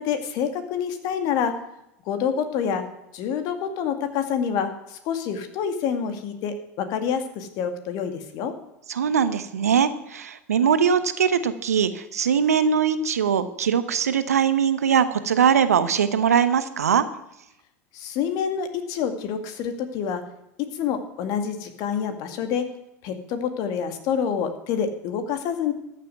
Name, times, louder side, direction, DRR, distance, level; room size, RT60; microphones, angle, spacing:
voice 1, 0.0-1.5 2.1-2.8 3.1-8.5 17.9-20.2 20.6-22.6 23.0-25.7, left 7 dB, 55° left, 8 dB, 2.0 m, -27 dB
voice 2, 8.9-17.0, right 7 dB, 85° right, 12 dB, 1.0 m, -21 dB
14.0 x 6.8 x 9.3 m, 0.84 s
hypercardioid pair, 85°, 8 cm